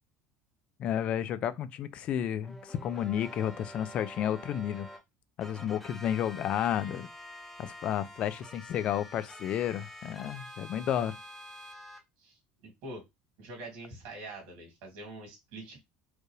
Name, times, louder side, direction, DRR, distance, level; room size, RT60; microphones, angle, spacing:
voice 1, 0.8-4.9 5.4-7.1 7.6-11.2, left 10 dB, 35° left, 0.4 m, -32 dB
sound 1, 2.4-5.0 5.4-12.0, left 1 dB, ahead, 0.7 m, -47 dB
voice 2, 12.2-13.1 13.4-15.8, right 2 dB, 65° right, 2.4 m, -45 dB
4.5 x 2.5 x 3.2 m
cardioid pair, 180°, 4 cm